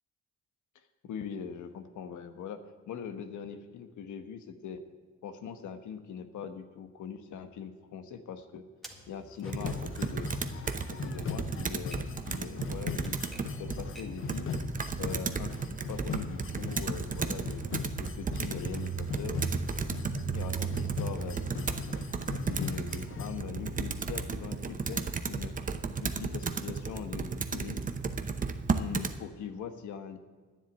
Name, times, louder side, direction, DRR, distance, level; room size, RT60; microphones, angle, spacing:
voice 1, 1.0-2.6 2.9-4.8 5.2-8.7 9.1-10.3 10.9-13.3 13.6-14.6 15.0-17.6 18.0-19.4 20.3-21.8 22.5-25.6 26.0-27.9 28.7-30.2, left 7 dB, 75° left, 8 dB, 1.2 m, -41 dB
Typewriter, 8.8-14.3, equal, ahead, 1.8 m, -53 dB
sound 1, 9.4-23.4, left 6 dB, 45° left, 0.7 m, -39 dB
Computer keyboard, 9.5-29.2, right 5 dB, 25° right, 0.8 m, -34 dB
10.0 x 7.4 x 9.5 m, 1.5 s
cardioid pair, 90°, 30 cm